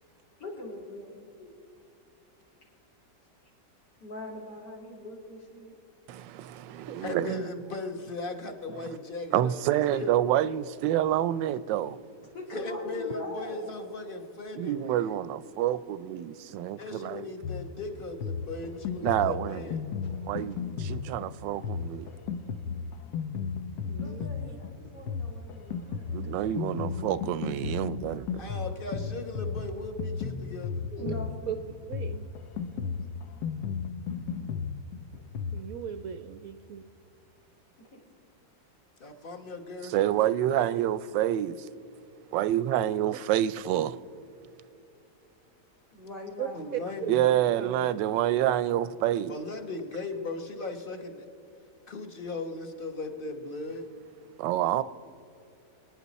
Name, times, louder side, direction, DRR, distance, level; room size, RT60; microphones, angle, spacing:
voice 1, 0.4-1.5 4.0-5.8 9.7-10.1 12.2-13.8 16.5-16.6 24.0-26.6 30.9-31.7 37.8-38.0 45.9-47.3, left 1 dB, 70° left, 3.7 m, -41 dB
voice 2, 6.1-7.4 9.3-12.0 14.6-17.3 19.0-19.7 20.2-22.1 26.1-28.4 39.8-41.7 42.3-44.0 47.1-49.3 54.4-54.8, right 12 dB, 90° right, 1.3 m, -28 dB
voice 3, 7.0-9.8 12.5-14.8 16.8-19.9 28.3-30.9 39.0-40.3 46.5-47.2 49.3-51.2 51.9-53.9, left 3 dB, 35° left, 1.2 m, -38 dB
Drum kit, 17.4-35.6, left 6 dB, 85° left, 1.4 m, -35 dB
voice 4, 23.9-24.6 31.0-31.1 31.5-31.6 31.9-32.3 35.5-36.8 46.4-47.9, right 9 dB, 70° right, 0.9 m, -38 dB
26.0 x 9.7 x 4.1 m
omnidirectional pair, 1.9 m